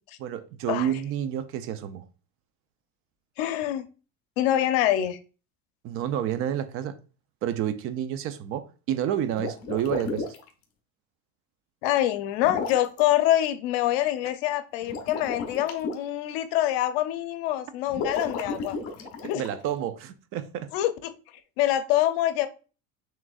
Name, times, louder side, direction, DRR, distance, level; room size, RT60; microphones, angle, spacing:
voice 1, 0.2-2.0 5.8-7.0 7.4-10.3 19.3-20.7, right 10 dB, 45° right, 0.5 m, -29 dB
voice 2, 3.4-3.9 4.4-5.2 11.8-18.8 19.2-19.4 20.7-21.1 21.6-22.5, left 13 dB, 85° left, 0.7 m, -25 dB
sound 1, 9.3-10.5 12.4-13.0 14.8-15.9 17.9-19.6, left 4 dB, 55° left, 1.0 m, -33 dB
6.1 x 3.2 x 2.4 m
cardioid pair, 160°, 30 cm